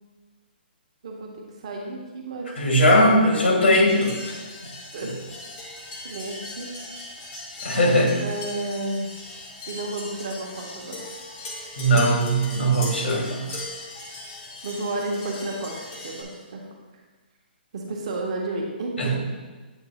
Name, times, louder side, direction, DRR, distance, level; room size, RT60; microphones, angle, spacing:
voice 1, 1.6-2.5 4.9-5.1 6.0-6.7 8.1-9.1 9.7-11.0 11.9-12.0 14.6-15.7 16.0-16.6 17.7-19.2, right 2 dB, 35° right, 0 dB, 0.9 m, -31 dB
voice 2, 2.6-4.3 7.6-8.1 11.8-13.6 19.0-19.2, equal, 85° left, 0 dB, 1.7 m, -19 dB
sound 1, 3.9-16.2, left 2 dB, 15° left, 0.6 m, -38 dB
8.1 x 3.2 x 4.2 m, 1.3 s
hypercardioid pair, 180°, 6 cm